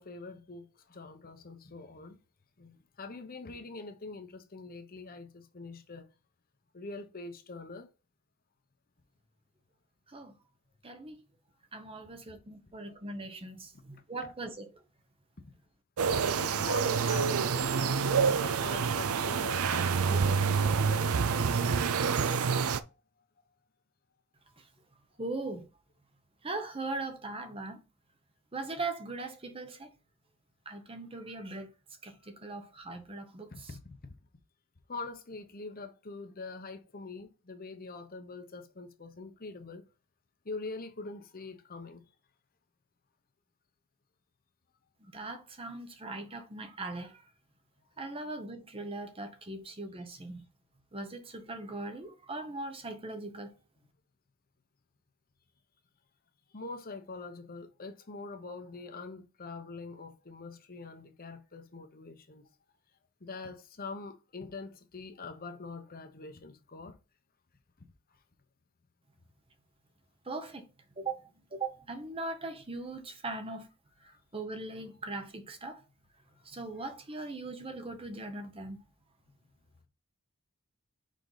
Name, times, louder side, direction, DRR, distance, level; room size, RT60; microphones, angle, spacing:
voice 1, 0.0-2.2 2.6-6.1 6.7-7.9 16.3-22.2 22.7-22.8 33.5-34.1 34.9-39.8 40.4-42.0 56.5-62.5 63.2-67.0 74.1-74.2, left 3 dB, 40° left, 0.8 m, -44 dB
voice 2, 10.8-11.2 11.7-14.7 25.2-25.7 26.4-27.8 28.5-29.9 30.7-31.7 32.0-33.7 45.1-47.2 48.0-50.4 50.9-53.5 70.3-70.7 71.0-73.7 74.3-75.8 76.5-78.8, right 2 dB, 25° right, 0.8 m, -40 dB
sound 1, 16.0-22.8, right 6 dB, 70° right, 0.5 m, -27 dB
5.1 x 5.0 x 3.9 m
head